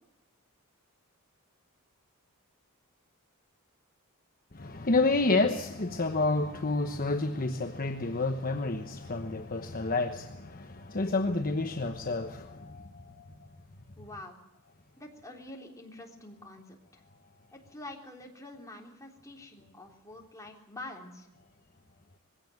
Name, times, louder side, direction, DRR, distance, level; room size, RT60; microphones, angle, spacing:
voice 1, 4.5-13.5, left 3 dB, 40° left, 1.1 m, -29 dB
voice 2, 14.0-14.4 15.0-17.0 17.5-21.3, left 2 dB, 15° left, 3.6 m, -46 dB
21.0 x 17.0 x 9.3 m
head